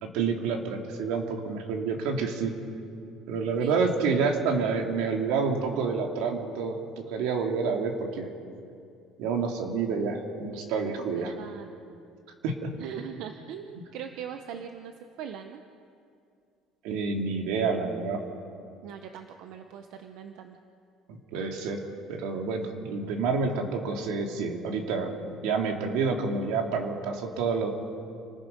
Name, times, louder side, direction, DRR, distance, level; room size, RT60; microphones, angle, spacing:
voice 1, 0.0-2.5 3.3-8.3 9.2-11.3 12.4-12.8 16.8-18.3 21.1-21.8 22.1-25.1 25.4-27.7, right 5 dB, 80° right, 3 dB, 2.8 m, -28 dB
voice 2, 3.6-4.1 11.0-11.7 12.8-14.9 15.2-15.6 18.8-20.6, right 8 dB, 60° right, 6 dB, 1.0 m, -41 dB
29.5 x 19.5 x 5.4 m, 2.5 s
cardioid pair, 180°, 0 cm